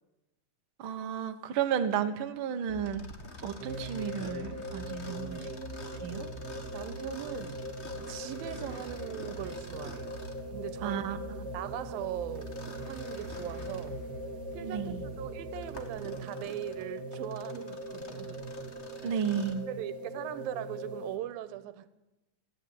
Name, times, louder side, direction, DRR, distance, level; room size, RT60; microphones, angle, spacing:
voice 1, 0.8-3.0 3.4-5.5 6.0-6.3 10.8-11.2 14.6-15.0 19.0-19.7, right 8 dB, 60° right, 1.3 m, -33 dB
sound 1, 2.7-15.8, left 2 dB, 5° left, 1.9 m, -47 dB
Mechanisms, 2.8-10.5 12.3-13.9 14.5-14.6 15.3-19.7, left 2 dB, 35° left, 1.0 m, -49 dB
sound 2, 3.6-21.2, right 1 dB, 35° right, 1.9 m, -41 dB
voice 2, 6.7-7.6 8.1-10.2 10.5-11.2 11.5-14.0 14.5-18.4 19.0-19.2 19.7-21.9, right 13 dB, 90° right, 2.8 m, -40 dB
27.5 x 9.8 x 9.7 m
omnidirectional pair, 4.0 m